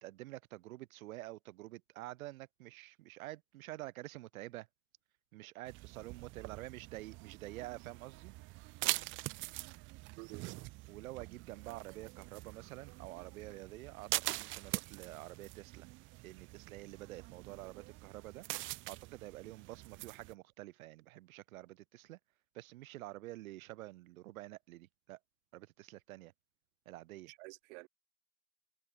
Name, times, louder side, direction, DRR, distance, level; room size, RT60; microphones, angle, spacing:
voice 1, 0.0-4.7 5.3-8.3 10.9-15.9 16.2-18.5 18.9-22.2 22.5-25.2 25.5-26.3 26.9-27.3, right 17 dB, 80° right, 1.8 m, -48 dB
sound 1, 5.7-20.3, right 22 dB, 30° right, 0.5 m, -44 dB
voice 2, 10.2-10.5 27.3-27.9, right 27 dB, 55° right, 1.5 m, -50 dB
supercardioid pair, 150°, 42 cm